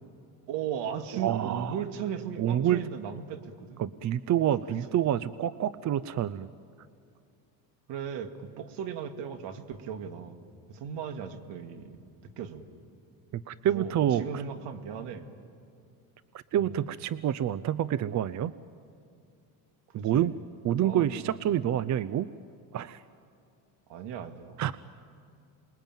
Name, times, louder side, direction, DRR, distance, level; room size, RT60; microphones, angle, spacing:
voice 1, 0.5-3.8 4.7-5.1 7.9-10.4 10.7-11.9 12.4-12.6 13.7-15.3 16.5-16.9 19.9-20.4 20.8-21.5 23.9-24.8, right 8 dB, 70° right, 8 dB, 2.2 m, -37 dB
voice 2, 1.1-1.8 2.4-2.8 3.8-6.5 13.3-14.2 16.5-18.5 19.9-20.3 20.6-22.3 22.7-23.0 24.6-24.7, right 11 dB, 40° right, 16 dB, 0.6 m, -27 dB
28.0 x 21.5 x 9.1 m, 2.5 s
supercardioid pair, 100°, 44 cm